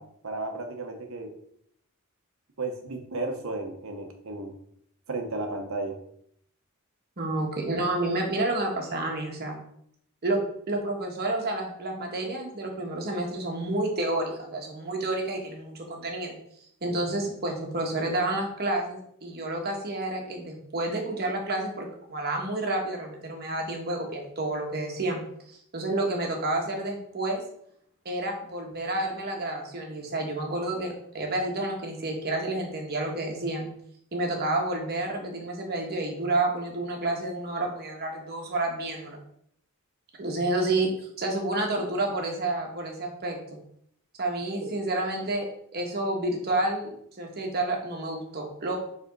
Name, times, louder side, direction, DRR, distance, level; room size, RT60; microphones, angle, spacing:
voice 1, 0.0-1.3 2.6-4.5 5.1-6.0 16.8-17.2 44.6-44.7, right 2 dB, 65° right, 5 dB, 1.0 m, -34 dB
voice 2, 7.2-9.6 10.2-10.4 10.7-16.4 16.8-25.2 25.7-27.4 28.0-33.7 34.1-39.2 40.2-40.9 41.2-43.6 44.2-48.8, right 2 dB, 45° right, 1 dB, 1.3 m, -29 dB
5.1 x 3.5 x 5.3 m, 0.69 s
head